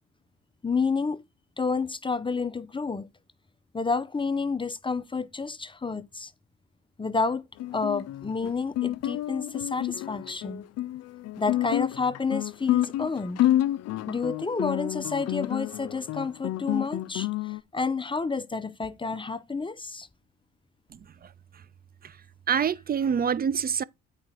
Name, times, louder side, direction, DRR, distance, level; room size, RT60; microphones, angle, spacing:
voice 1, 0.6-1.2 1.6-3.1 3.7-6.3 7.0-7.4 7.7-10.6 11.4-13.4 14.1-20.1, left 4 dB, 15° left, 0.6 m, -30 dB
Guitar, 7.6-17.6, left 13 dB, 55° left, 0.5 m, -29 dB
voice 2, 20.9-21.3 22.0-22.2 22.5-23.8, right 7 dB, 30° right, 0.5 m, -26 dB
8.6 x 4.9 x 4.5 m
supercardioid pair, 70°, 30 cm